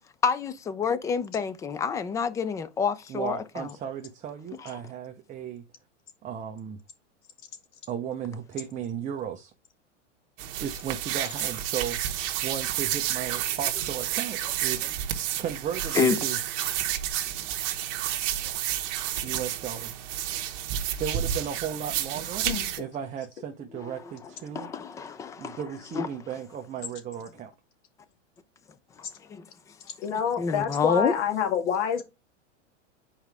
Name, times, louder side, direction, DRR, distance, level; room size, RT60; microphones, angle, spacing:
voice 1, 0.2-3.7 4.6-4.7 15.9-16.2 23.8-23.9 24.5-25.6 25.9-26.1 29.3-29.5 30.4-31.1, left 6 dB, 10° left, 0.3 m, -27 dB
voice 2, 3.1-5.6 6.2-6.8 7.9-9.5 10.6-14.8 15.4-16.4 19.2-20.0 21.0-22.5 22.8-24.7 25.4-27.5, right 8 dB, 20° right, 0.8 m, -35 dB
sound 1, 10.4-22.8, right 11 dB, 45° right, 1.3 m, -30 dB
voice 3, 30.0-32.0, left 7 dB, 70° left, 2.3 m, -27 dB
8.7 x 4.7 x 3.5 m
hypercardioid pair, 130°, 37 cm